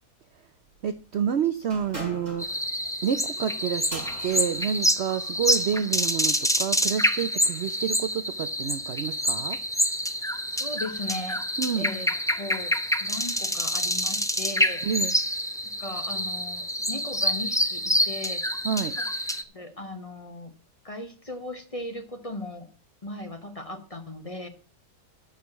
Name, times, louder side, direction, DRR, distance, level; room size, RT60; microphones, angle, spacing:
voice 1, 0.8-2.4 3.0-9.6 11.6-11.9 14.8-15.1 18.6-18.9, right 8 dB, 60° right, 11 dB, 0.7 m, -29 dB
sound 1, 1.6-5.8, right 1 dB, 25° right, 5.6 m, -42 dB
sound 2, 2.4-19.4, equal, 5° left, 0.3 m, -27 dB
voice 2, 10.5-12.1 12.4-12.7 13.0-14.8 15.8-18.4 18.9-19.0 19.5-20.5 20.8-22.7 23.0-24.5, left 2 dB, 25° left, 7 dB, 1.1 m, -37 dB
12.5 x 5.0 x 7.2 m, 0.39 s
omnidirectional pair, 1.7 m